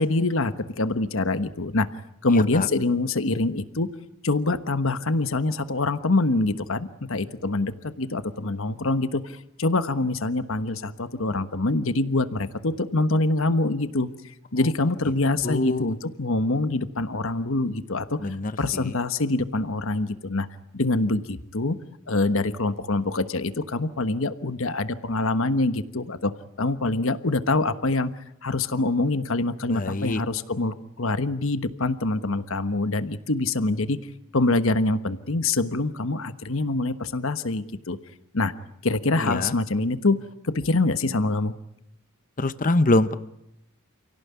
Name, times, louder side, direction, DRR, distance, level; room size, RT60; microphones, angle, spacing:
voice 1, 0.0-1.9 2.2-3.9 4.2-18.2 18.6-20.5 20.7-21.8 22.1-26.3 26.6-34.0 34.3-38.0 38.3-38.5 38.8-40.2 40.4-41.5, left 2 dB, 65° left, 11 dB, 1.3 m, -25 dB
voice 2, 2.3-2.7 15.4-15.9 18.2-18.9 29.7-30.2 39.2-39.5 42.4-43.1, left 2 dB, 40° left, 13 dB, 0.9 m, -24 dB
28.5 x 17.5 x 9.6 m, 0.81 s
head